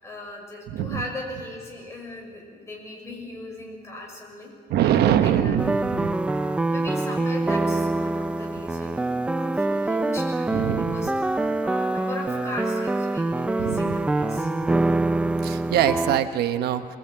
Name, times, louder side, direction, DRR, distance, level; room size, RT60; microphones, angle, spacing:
voice 1, 0.0-4.5 4.8-5.6 6.7-9.1 9.3-11.3 11.6-14.5, left 2 dB, 15° left, -1 dB, 6.2 m, -38 dB
voice 2, 0.7-1.0 4.7-6.2 10.5-11.0 13.6-14.0 15.4-16.9, right 10 dB, 85° right, 8 dB, 1.1 m, -23 dB
sound 1, 5.6-16.2, right 2 dB, 5° right, 0.6 m, -25 dB
25.0 x 20.5 x 8.8 m, 2.1 s
cardioid pair, 180°, 16 cm